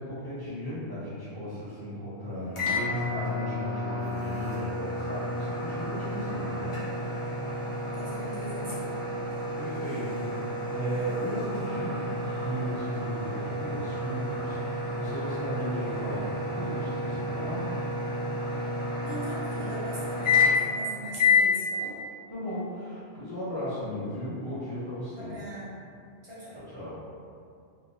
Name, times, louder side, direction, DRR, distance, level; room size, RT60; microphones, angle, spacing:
voice 1, 0.0-6.8 9.5-17.7 22.3-25.4 26.6-27.0, equal, 20° left, -12 dB, 0.8 m, -36 dB
sound 1, 2.5-20.8 21.2-21.5, left 3 dB, 55° left, 0.3 m, -30 dB
voice 2, 7.9-8.9 19.0-22.0 25.2-26.0 26.2-26.6, right 1 dB, 35° right, -10 dB, 0.7 m, -40 dB
2.8 x 2.2 x 2.7 m, 2.3 s
omnidirectional pair, 1.2 m